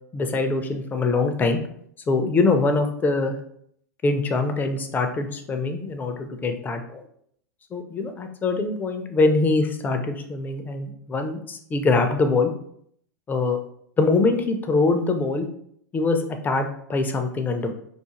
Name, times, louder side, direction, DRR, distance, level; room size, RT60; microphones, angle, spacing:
voice 1, 0.1-1.6 2.1-3.4 4.0-7.0 7.7-12.5 13.3-13.6 14.0-15.5 15.9-17.7, left 3 dB, 20° left, 6 dB, 0.3 m, -23 dB
2.4 x 2.3 x 2.8 m, 0.68 s
hypercardioid pair, 100°, 10 cm